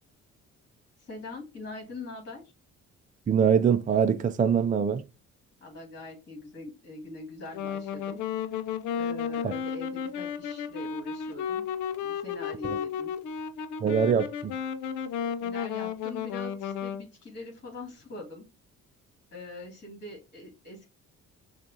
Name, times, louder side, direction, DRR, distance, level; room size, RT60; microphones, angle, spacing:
voice 1, 1.0-2.4 5.6-8.2 9.0-11.6 12.0-13.1 15.4-18.4 19.3-20.9, left 2 dB, 35° left, 2.5 m, -43 dB
voice 2, 3.3-5.0 9.4-9.5 12.6-12.7 13.8-14.5, right 7 dB, 25° right, 0.4 m, -23 dB
Wind instrument woodwind instrument, 7.5-17.1, left 7 dB, 75° left, 0.6 m, -33 dB
6.3 x 2.5 x 2.9 m
cardioid pair, 90°, 30 cm